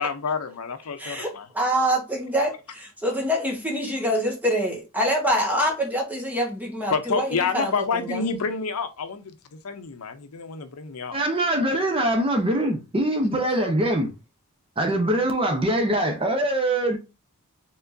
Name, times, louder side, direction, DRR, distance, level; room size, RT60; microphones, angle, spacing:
voice 1, 0.0-1.5 6.9-11.2, left 5 dB, 70° left, 0.6 m, -28 dB
voice 2, 1.0-7.7 8.1-8.2, equal, 10° right, 1.5 m, -25 dB
voice 3, 11.1-14.1 14.8-17.0, right 1 dB, 25° right, 0.8 m, -23 dB
4.6 x 3.7 x 2.6 m
head